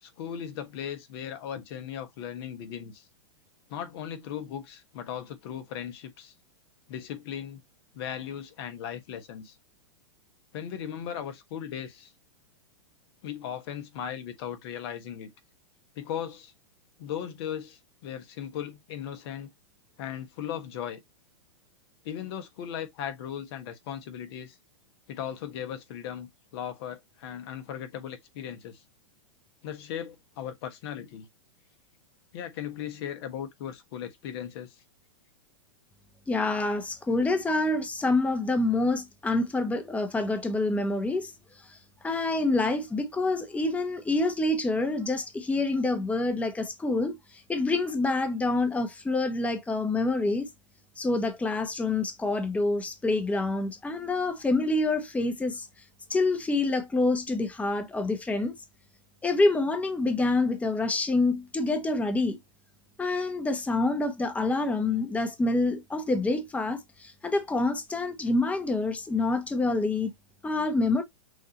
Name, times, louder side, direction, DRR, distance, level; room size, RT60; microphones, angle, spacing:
voice 1, 0.0-3.0 3.7-6.3 6.9-7.6 7.9-9.5 10.5-12.1 13.2-15.3 16.0-16.5 17.0-19.5 20.0-21.0 22.0-24.6 25.1-28.8 29.6-31.3 32.3-34.8, left 9 dB, 55° left, 1.3 m, -37 dB
voice 2, 36.3-41.3 42.0-47.2 47.5-50.5 51.0-55.6 56.1-58.5 59.2-62.4 63.0-70.1 70.4-71.0, left 2 dB, 10° left, 1.0 m, -27 dB
6.4 x 2.8 x 2.9 m
hypercardioid pair, 115°, 15 cm